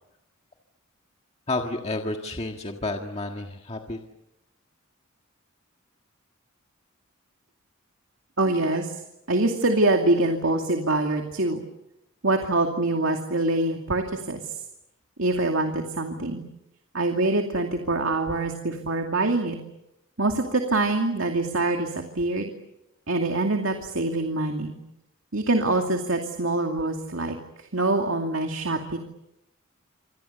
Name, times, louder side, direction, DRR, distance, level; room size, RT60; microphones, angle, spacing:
voice 1, 1.5-4.0, left 2 dB, 30° left, 2 dB, 1.7 m, -30 dB
voice 2, 8.4-9.0 9.3-11.6 12.2-14.6 15.2-16.4 16.9-19.6 20.2-22.5 23.1-24.7 25.3-29.0, right 2 dB, 70° right, 3 dB, 2.5 m, -25 dB
28.0 x 26.5 x 6.8 m, 0.87 s
head